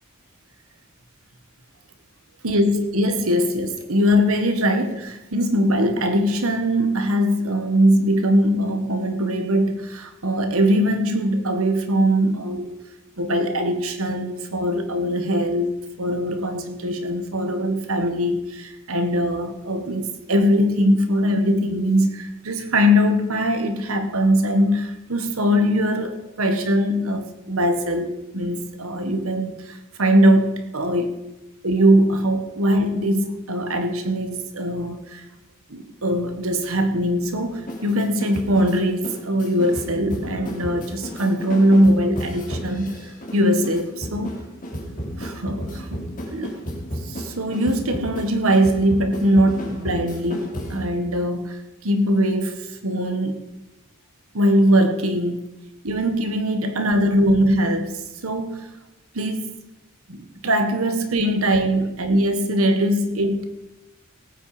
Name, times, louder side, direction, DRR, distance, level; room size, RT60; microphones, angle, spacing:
voice 1, 2.4-12.7 13.2-15.7 16.0-31.2 31.6-35.2 35.7-44.4 45.2-46.5 47.0-53.4 54.3-55.4 55.8-58.7 59.1-59.5 60.1-63.4, equal, 75° right, 7 dB, 1.6 m, -21 dB
sound 1, 37.5-51.0, equal, 40° left, 2.9 m, -33 dB
18.0 x 8.8 x 5.0 m, 0.97 s
head